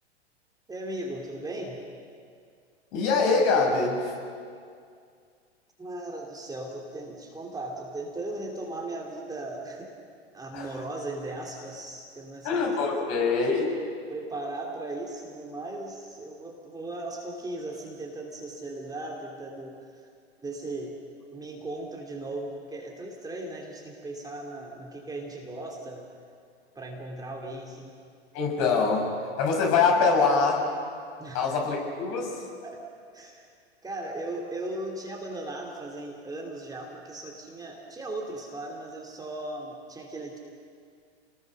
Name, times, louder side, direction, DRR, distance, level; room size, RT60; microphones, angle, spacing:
voice 1, 0.7-1.8 5.8-9.9 10.3-12.7 13.0-13.1 14.1-20.1 20.4-21.0 21.3-26.0 26.7-27.9 31.2-31.6 32.6-32.8 33.1-33.4 33.8-40.4, right 2 dB, 10° right, -1 dB, 3.0 m, -37 dB
voice 2, 2.9-4.1 10.5-10.7 12.4-13.7 28.3-29.1 29.4-30.7 31.3-32.4, left 4 dB, 45° left, 1 dB, 6.7 m, -24 dB
29.0 x 20.5 x 6.5 m, 2.3 s
hypercardioid pair, 105°, 33 cm